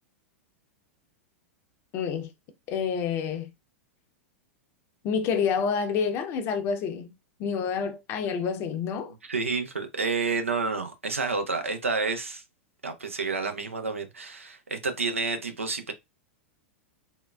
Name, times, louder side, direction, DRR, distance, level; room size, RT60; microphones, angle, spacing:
voice 1, 1.9-2.3 2.7-3.5 5.0-7.1 7.4-9.1, left 6 dB, 35° left, 0.6 m, -28 dB
voice 2, 9.2-12.4 12.8-15.9, right 4 dB, 85° right, 0.6 m, -29 dB
3.6 x 2.3 x 2.2 m
figure-of-eight pair, 95°, 7 cm